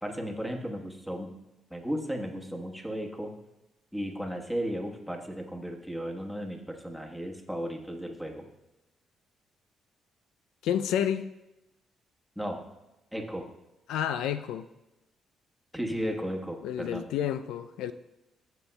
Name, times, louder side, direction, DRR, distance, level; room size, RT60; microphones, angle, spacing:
voice 1, 0.0-1.4 1.7-3.3 3.9-8.4 12.4-12.6 13.1-13.5 15.7-17.1, equal, ahead, 1.2 m, -35 dB
voice 2, 10.6-11.3 13.9-14.7 16.6-17.9, left 9 dB, 90° left, 0.3 m, -30 dB
14.0 x 7.1 x 2.2 m
cardioid pair, 90°, 0 cm